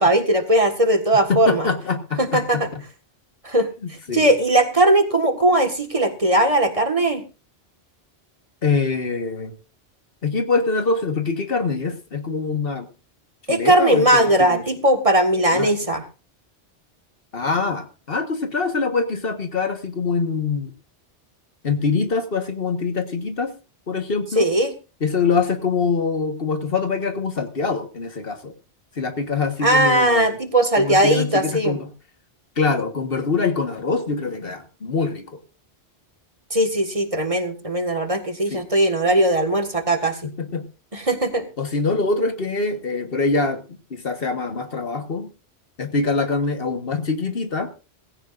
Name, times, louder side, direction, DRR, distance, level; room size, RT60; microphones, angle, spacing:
voice 1, 0.0-1.7 2.2-2.7 3.4-7.2 13.5-16.1 24.4-24.7 29.6-31.8 36.5-40.3 40.9-41.5, right 1 dB, 30° right, 6 dB, 1.7 m, -19 dB
voice 2, 1.3-2.6 4.1-4.3 8.6-9.5 10.2-12.9 13.5-14.6 15.5-15.7 17.3-20.7 21.6-23.5 23.9-24.5 25.0-28.5 28.9-30.4 30.7-31.9 32.6-35.4 38.5-38.6 40.4-40.6 41.6-43.6 43.9-45.3 45.8-47.7, left 4 dB, 60° left, 7 dB, 1.6 m, -24 dB
17.5 x 16.0 x 2.5 m, 0.32 s
omnidirectional pair, 1.1 m